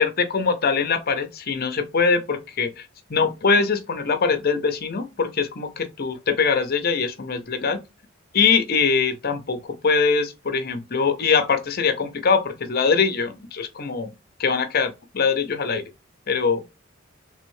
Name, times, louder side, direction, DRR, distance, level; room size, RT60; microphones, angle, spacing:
voice 1, 0.0-2.8 3.1-7.8 8.3-9.6 9.8-14.1 14.4-15.8 16.3-16.6, left 5 dB, 50° left, 0.7 m, -22 dB
3.4 x 3.2 x 3.1 m
head